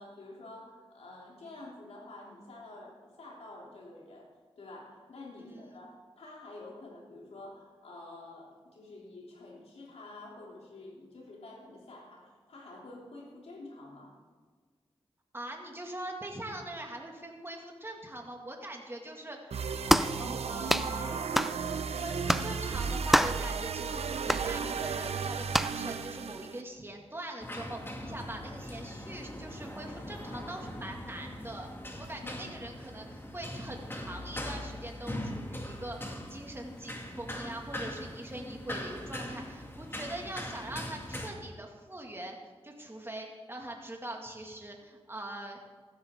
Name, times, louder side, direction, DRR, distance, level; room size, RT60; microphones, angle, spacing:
voice 1, 0.0-4.3 4.6-14.1 28.0-28.2 32.2-32.4, left 2 dB, 90° left, -3 dB, 3.2 m, -48 dB
voice 2, 15.3-19.6 20.2-21.3 22.0-31.7 32.0-42.4 42.6-45.6, right 1 dB, 25° right, 1 dB, 2.2 m, -42 dB
sound 1, 19.5-26.6, right 6 dB, 85° right, 0.6 m, -34 dB
sound 2, 19.9-20.2 20.7-20.9 21.3-21.6 22.3-22.5 23.1-23.4 24.3-24.5 25.5-25.8, equal, ahead, 0.4 m, -25 dB
sound 3, 27.4-41.3, left 1 dB, 20° left, 2.2 m, -41 dB
15.0 x 12.5 x 3.8 m, 1.5 s
cardioid pair, 60°, 10 cm